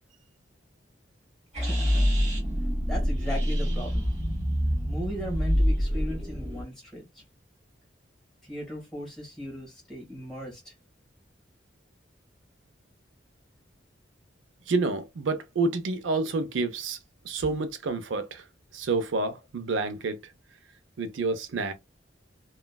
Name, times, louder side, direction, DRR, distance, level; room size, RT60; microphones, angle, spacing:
voice 1, 1.5-2.1 2.9-4.1 4.9-7.2 8.5-10.7, equal, ahead, 1.4 m, -37 dB
sound 1, 1.5-6.6, equal, 35° right, 1.1 m, -26 dB
voice 2, 14.7-17.0 17.2-18.4 18.7-20.3 21.0-21.7, right 3 dB, 85° right, 0.5 m, -28 dB
3.0 x 2.3 x 2.2 m
head